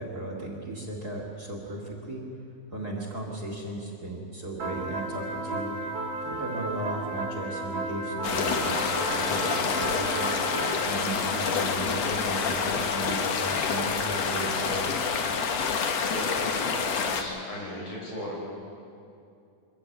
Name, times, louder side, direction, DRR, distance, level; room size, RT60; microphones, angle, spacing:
voice 1, 0.0-2.3 2.7-5.8 6.2-10.4 10.8-14.9, right 1 dB, 30° right, 0 dB, 2.2 m, -36 dB
sound 1, 4.6-10.8, right 2 dB, 60° right, 1.3 m, -33 dB
sound 2, 8.2-17.2, left 5 dB, 60° left, 2.1 m, -27 dB
voice 2, 16.1-18.4, left 1 dB, 90° left, -3 dB, 7.5 m, -37 dB
24.0 x 14.0 x 8.9 m, 2.5 s
omnidirectional pair, 4.0 m